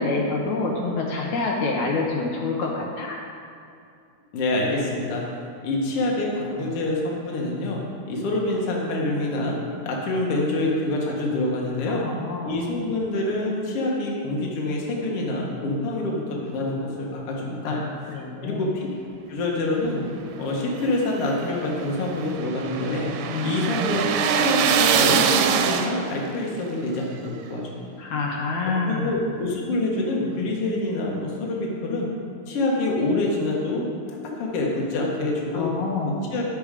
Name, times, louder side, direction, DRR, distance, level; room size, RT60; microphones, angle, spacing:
voice 1, 0.0-3.2 11.9-12.6 17.6-18.7 23.3-23.8 28.0-29.2 35.5-36.2, left 3 dB, 75° left, -2 dB, 2.4 m, -27 dB
voice 2, 4.3-5.2 5.6-7.8 8.1-9.6 9.8-12.0 12.4-17.8 18.4-18.9 19.3-20.0 20.4-23.1 23.4-27.9 28.6-32.1 32.5-33.9 34.4-35.7 36.3-36.4, left 2 dB, 55° left, -2 dB, 2.1 m, -26 dB
sound 1, 20.8-26.3, right 7 dB, 80° right, 1.9 m, -23 dB
9.7 x 6.9 x 5.0 m, 2.5 s
omnidirectional pair, 3.4 m